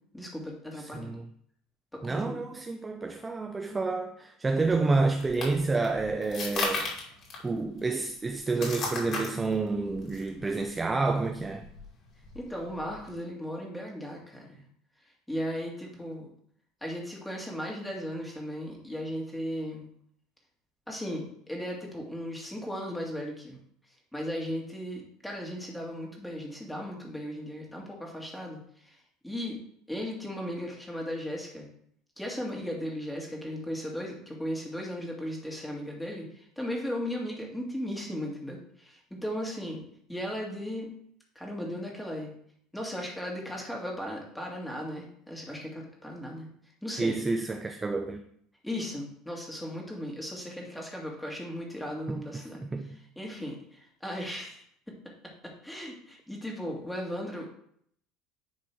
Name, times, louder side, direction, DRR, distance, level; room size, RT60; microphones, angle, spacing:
voice 1, 0.1-1.1 1.9-2.5 12.3-14.5 15.3-16.3 16.8-19.9 20.9-23.6 24.1-29.0 29.2-29.6 29.9-31.7 32.2-39.8 40.1-40.9 41.4-42.3 42.7-46.5 46.8-47.2 48.6-54.6 55.6-57.5, equal, 5° left, 1.9 m, -36 dB
voice 2, 0.8-1.2 2.0-7.0 7.4-11.7 47.0-48.2 52.1-53.0, right 3 dB, 15° right, 0.5 m, -29 dB
sound 1, 4.6-13.2, left 3 dB, 40° left, 2.7 m, -38 dB
10.0 x 3.7 x 4.6 m
cardioid pair, 135°, 0 cm